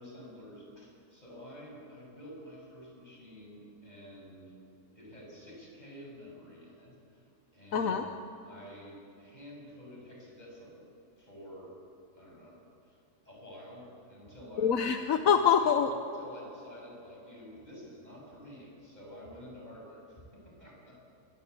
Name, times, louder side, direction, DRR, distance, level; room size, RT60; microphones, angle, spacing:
voice 1, 0.0-4.5 4.9-8.1 8.5-10.9 11.2-11.7 12.1-12.6 12.8-14.8 15.6-15.7 16.1-21.0, equal, 30° left, -2 dB, 7.4 m, -49 dB
voice 2, 7.7-8.0 14.6-15.9, left 7 dB, 75° left, 7 dB, 1.4 m, -25 dB
26.5 x 22.0 x 8.5 m, 2.8 s
omnidirectional pair, 1.5 m